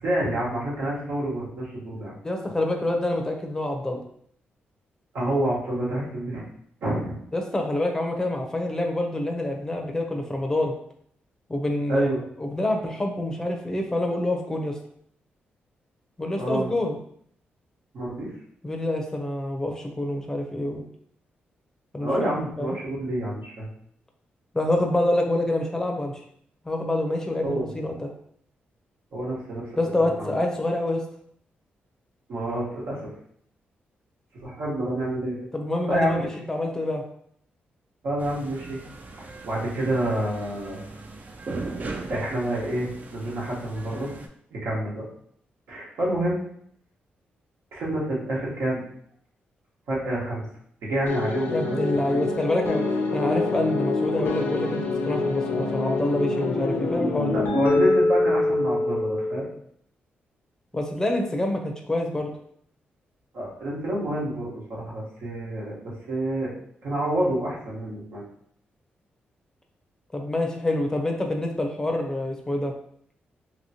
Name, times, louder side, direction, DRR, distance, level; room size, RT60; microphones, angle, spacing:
voice 1, 0.0-2.1 5.1-6.4 6.8-7.2 11.9-12.2 16.4-16.7 17.9-18.3 22.0-23.7 27.4-27.7 29.1-29.7 30.2-30.4 32.3-33.1 34.4-35.4 35.9-36.3 38.0-38.8 39.2-40.8 42.1-44.1 44.5-45.0 45.7-46.4 47.7-48.8 49.9-50.4 50.8-52.2 57.3-59.5 63.3-66.5 66.8-68.2, right 1 dB, 80° right, -5 dB, 1.2 m, -28 dB
voice 2, 2.2-4.0 7.3-10.7 11.5-12.1 12.4-14.8 16.2-17.0 18.6-20.8 21.9-22.1 22.6-22.8 24.5-26.2 26.7-28.1 29.8-31.0 35.5-37.0 51.5-57.4 60.7-62.3 70.1-72.7, left 1 dB, 15° left, 2 dB, 0.5 m, -27 dB
sound 1, 38.2-44.3, right 3 dB, 45° right, 0.4 m, -38 dB
sound 2, 51.1-59.5, left 2 dB, 80° left, 0.6 m, -25 dB
2.9 x 2.8 x 2.8 m, 0.66 s
cardioid pair, 85°, 4 cm